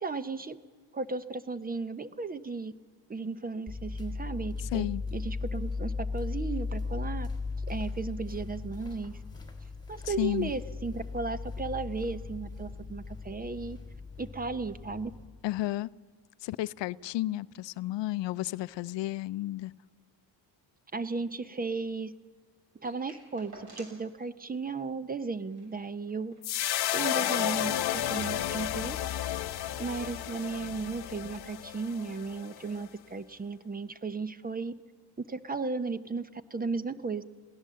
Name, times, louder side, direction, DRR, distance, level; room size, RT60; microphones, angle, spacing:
voice 1, 0.0-0.6 0.9-2.7 3.1-4.9 5.1-7.3 7.7-9.2 9.9-13.8 14.2-15.1 20.9-22.1 22.8-26.3 26.9-29.0 29.8-34.7 35.2-37.2, right 4 dB, 20° right, 15 dB, 0.7 m, -35 dB
sound 1, 3.7-15.3, left 4 dB, 10° left, 3.4 m, -37 dB
voice 2, 4.6-5.0 10.0-10.5 15.4-15.9 16.4-19.7, left 16 dB, 75° left, 18 dB, 0.6 m, -32 dB
sound 2, 22.8-24.1 24.4-24.5 24.8-25.0 25.4-26.5 26.8-26.9 27.1-28.3 29.2-29.3, right 2 dB, 55° right, 6.5 m, -52 dB
sound 3, 26.4-32.8, left 12 dB, 60° left, 0.9 m, -32 dB
22.0 x 16.5 x 7.5 m, 1.6 s
cardioid pair, 120°, 44 cm